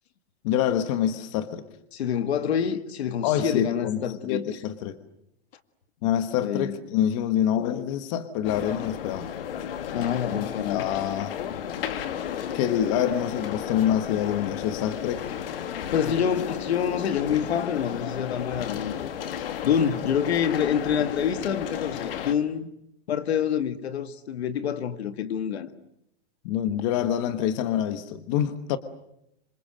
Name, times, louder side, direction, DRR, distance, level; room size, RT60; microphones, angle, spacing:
voice 1, 0.4-1.6 3.2-5.0 6.0-9.3 10.3-11.3 12.5-15.3 26.4-28.8, left 10 dB, 30° left, 1.2 m, -26 dB
voice 2, 1.9-4.5 6.4-6.8 9.9-10.8 15.9-22.7 23.1-25.7, left 8 dB, 80° left, 2.1 m, -27 dB
sound 1, 8.4-22.3, left 9 dB, 60° left, 2.2 m, -33 dB
27.5 x 26.5 x 7.7 m
supercardioid pair, 175°, 32 cm